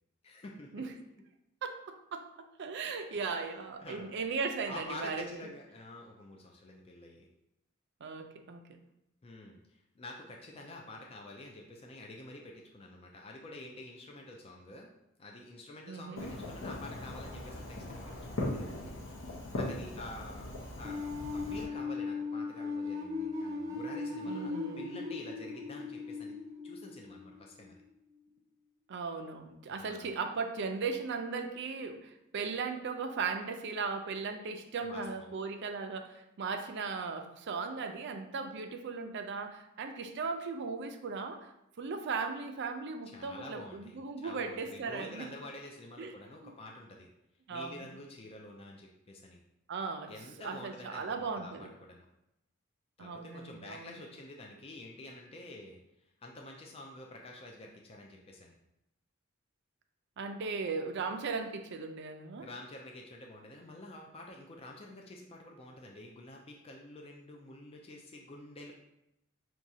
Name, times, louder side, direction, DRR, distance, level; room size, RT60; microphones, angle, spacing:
voice 1, 0.2-0.8 3.2-4.2 4.7-7.3 9.2-14.9 15.2-18.9 19.5-20.5 20.7-26.3 26.6-27.8 29.7-30.1 34.8-35.3 43.0-47.1 47.5-49.4 50.1-52.1 53.0-55.8 56.2-58.6 62.4-68.7, left 2 dB, 30° left, 0 dB, 0.4 m, -48 dB
voice 2, 1.6-2.2 2.6-5.4 8.0-8.8 15.9-16.3 24.3-25.0 28.9-41.4 41.8-45.3 46.0-46.1 46.4-46.5 47.5-47.9 49.7-50.1 50.4-51.7 53.0-54.0 60.2-62.5, right 4 dB, 55° right, 5 dB, 0.4 m, -37 dB
Fireworks, 16.2-21.7, left 1 dB, 65° left, 0.8 m, -40 dB
sound 1, 20.8-27.7, left 4 dB, 15° right, 0.6 m, -38 dB
6.0 x 2.3 x 2.7 m, 0.85 s
head